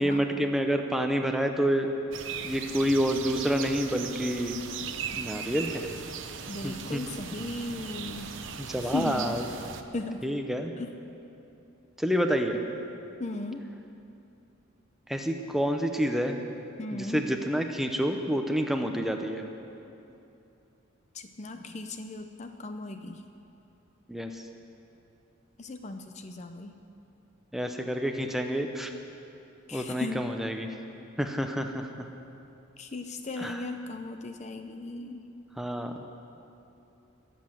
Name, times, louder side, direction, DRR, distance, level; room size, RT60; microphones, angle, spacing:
voice 1, 0.0-1.9 2.4-4.6 5.2-5.9 6.6-7.0 8.6-9.5 10.2-10.7 12.0-12.6 15.1-16.4 16.9-19.4 24.1-24.5 27.5-28.9 29.7-30.7 31.2-32.1 33.4-33.6 35.6-35.9, equal, ahead, 4 dB, 0.8 m, -28 dB
sound 1, 2.1-9.8, right 7 dB, 70° right, 0.9 m, -38 dB
voice 2, 6.5-8.3 8.8-9.4 9.9-10.2 10.8-10.9 13.2-13.6 16.8-17.3 21.1-23.2 25.6-26.8 29.7-30.3 32.8-35.3, left 2 dB, 35° left, 7 dB, 0.6 m, -37 dB
21.0 x 7.8 x 7.7 m, 2.8 s
head